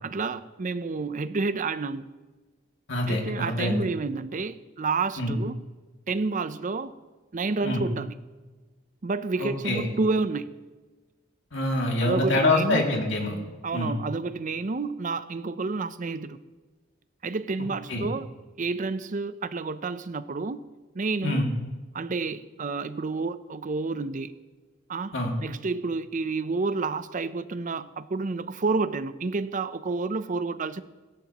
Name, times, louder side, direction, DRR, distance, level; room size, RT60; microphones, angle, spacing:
voice 1, 0.0-2.1 3.1-5.6 6.1-6.9 7.3-8.1 9.0-10.5 12.0-12.9 13.6-16.4 17.2-18.3 18.6-20.6 20.9-21.4 21.9-24.3 24.9-30.8, right 3 dB, 40° right, 0.6 m, -29 dB
voice 2, 2.9-3.9 5.2-5.4 7.6-7.8 9.4-9.9 11.5-13.4 13.7-14.0 17.9-18.1 21.2-21.5 25.1-25.3, left 2 dB, 65° left, 2.4 m, -25 dB
17.5 x 16.0 x 3.0 m
head